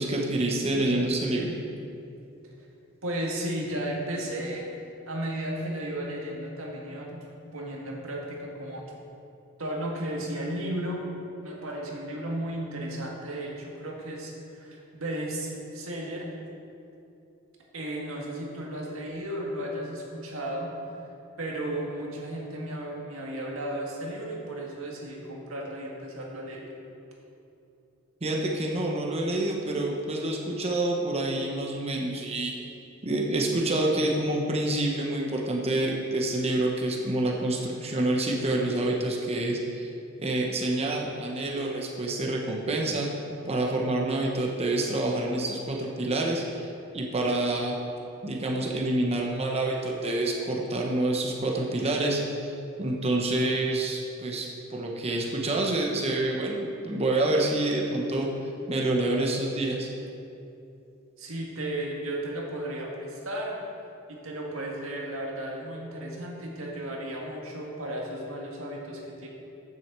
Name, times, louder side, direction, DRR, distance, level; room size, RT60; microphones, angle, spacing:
voice 1, 0.0-1.6 28.2-32.5 33.0-39.9 40.2-43.1 43.5-47.8 48.2-58.3 58.7-59.9, right 2 dB, 30° right, -1 dB, 0.9 m, -27 dB
voice 2, 3.0-4.7 5.1-7.2 7.5-8.9 9.6-11.0 11.4-16.3 17.7-20.7 21.4-26.7 61.2-63.6 64.1-69.3, right 1 dB, 90° right, -2 dB, 1.8 m, -34 dB
7.7 x 6.3 x 7.5 m, 2.7 s
head